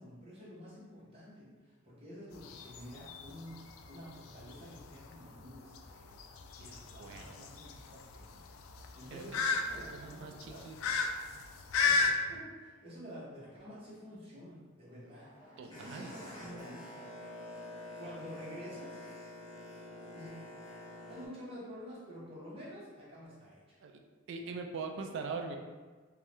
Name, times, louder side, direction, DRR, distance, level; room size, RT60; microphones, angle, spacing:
voice 1, 0.0-3.6 3.9-6.3 6.6-8.4 8.9-10.7 11.8-16.9 18.0-19.1 20.1-20.4 21.1-23.8 24.4-24.5, equal, 30° right, -8 dB, 1.0 m, -50 dB
sound 1, 2.3-12.1, left 4 dB, 80° left, 0.3 m, -35 dB
voice 2, 6.6-7.5 9.1-11.4 15.6-16.1 23.8-23.9 24.3-25.6, right 4 dB, 60° right, 4 dB, 0.3 m, -43 dB
Boat Water vehicle, 15.1-21.3, left 1 dB, 20° left, 0.6 m, -47 dB
2.6 x 2.3 x 3.3 m, 1.4 s
head